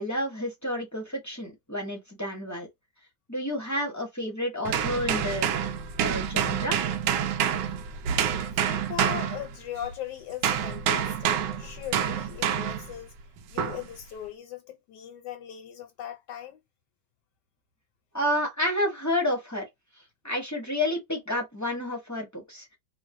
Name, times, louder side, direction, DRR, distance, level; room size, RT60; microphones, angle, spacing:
voice 1, 0.0-2.7 3.3-5.5 6.0-6.8 18.1-19.7 20.2-22.7, left 1 dB, 15° left, 0.5 m, -30 dB
sound 1, 4.7-9.9 10.4-12.9 13.6-13.9, right 8 dB, 85° right, 1.2 m, -27 dB
voice 2, 8.5-13.1 13.5-16.6, left 11 dB, 80° left, 1.3 m, -39 dB
3.1 x 2.0 x 3.5 m
omnidirectional pair, 1.9 m